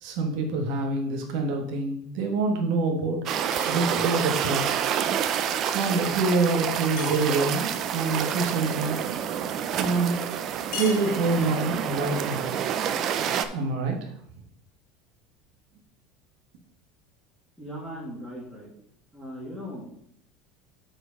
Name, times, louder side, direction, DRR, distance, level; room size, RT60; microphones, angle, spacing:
voice 1, 0.0-4.8 5.7-9.0 9.7-10.2 10.8-12.5 13.5-14.1, right 3 dB, 55° right, 2 dB, 1.3 m, -26 dB
sound 1, 3.3-13.5, right 9 dB, 35° right, 0.5 m, -28 dB
sound 2, 3.5-4.4 7.0-7.7 10.7-11.7, left 6 dB, 60° left, 1.5 m, -40 dB
voice 2, 17.6-18.7 19.1-20.1, equal, ahead, -8 dB, 2.0 m, -39 dB
7.7 x 4.5 x 5.0 m, 0.69 s
cardioid pair, 175°, 0 cm